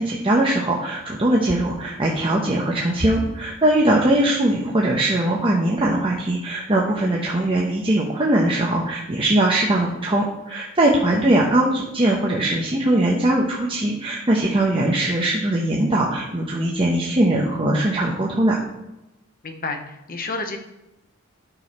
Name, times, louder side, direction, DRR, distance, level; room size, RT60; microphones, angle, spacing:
voice 1, 0.0-18.6, right 1 dB, 25° right, -3 dB, 0.9 m, -20 dB
voice 2, 19.4-20.6, left 3 dB, 40° left, 5 dB, 0.9 m, -30 dB
9.1 x 6.4 x 4.3 m, 0.96 s
head